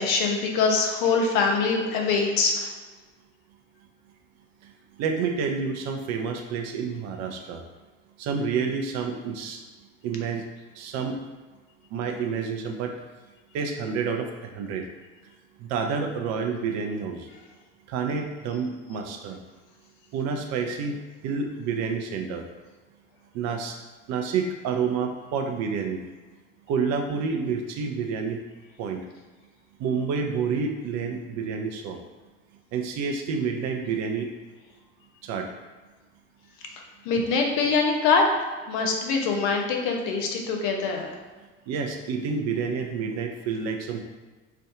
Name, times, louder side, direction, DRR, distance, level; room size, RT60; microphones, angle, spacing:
voice 1, 0.0-2.7 37.0-38.3 38.7-41.2, left 4 dB, 50° left, 2 dB, 0.7 m, -23 dB
voice 2, 5.0-7.6 8.2-9.6 10.0-10.4 10.7-11.2 11.9-12.9 13.5-14.9 15.6-17.3 17.9-19.4 20.1-22.4 23.3-23.8 24.1-26.0 26.7-28.4 28.8-29.0 29.8-32.0 32.7-34.3 35.2-35.5 41.7-44.0, right 5 dB, 45° right, 4 dB, 0.6 m, -29 dB
4.4 x 2.5 x 2.4 m, 1.3 s
figure-of-eight pair, 60°, 39 cm